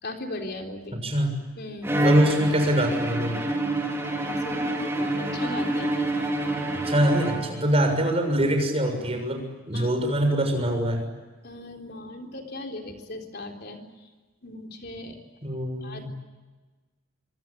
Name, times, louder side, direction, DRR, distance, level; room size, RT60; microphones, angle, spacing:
voice 1, 0.0-1.0 1.6-1.9 4.2-5.9 9.7-10.0 11.4-13.8 14.4-15.2 15.8-16.1, left 2 dB, 50° left, 3 dB, 3.9 m, -37 dB
voice 2, 0.9-1.3 2.0-3.4 6.7-11.0 15.4-16.1, right 1 dB, 30° right, 5 dB, 6.7 m, -24 dB
Bowed string instrument, 1.8-7.9, right 1 dB, 10° right, 4.5 m, -27 dB
26.5 x 25.5 x 8.6 m, 1.3 s
head